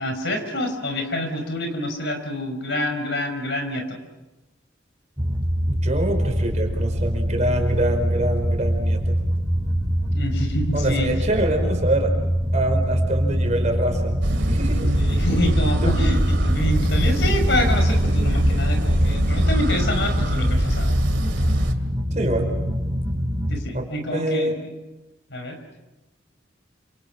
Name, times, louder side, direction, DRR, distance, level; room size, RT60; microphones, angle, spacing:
voice 1, 0.0-4.0 10.1-11.1 15.0-21.0 23.5-24.5 25.3-25.6, left 1 dB, 65° left, 6 dB, 5.5 m, -27 dB
sound 1, 5.2-23.6, equal, 10° right, 6.4 m, -24 dB
voice 2, 5.7-9.2 10.7-12.1 12.5-14.9 15.7-15.9 22.1-22.5 23.7-24.6, right 1 dB, 40° right, 4 dB, 5.2 m, -25 dB
sound 2, 14.2-21.7, equal, 65° right, 2.7 m, -22 dB
29.0 x 27.5 x 6.1 m, 1.1 s
head